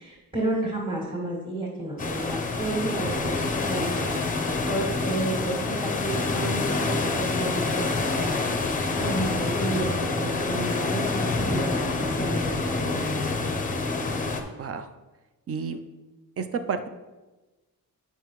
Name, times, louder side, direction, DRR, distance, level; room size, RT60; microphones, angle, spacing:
voice 1, 0.0-13.1, right 2 dB, 15° right, -5 dB, 1.7 m, -32 dB
sound 1, 2.0-14.4, left 3 dB, 25° left, 0.6 m, -27 dB
voice 2, 15.5-15.8 16.4-16.9, right 5 dB, 40° right, 9 dB, 0.4 m, -30 dB
9.1 x 5.6 x 3.0 m, 1.2 s
wide cardioid pair, 180°, 36 cm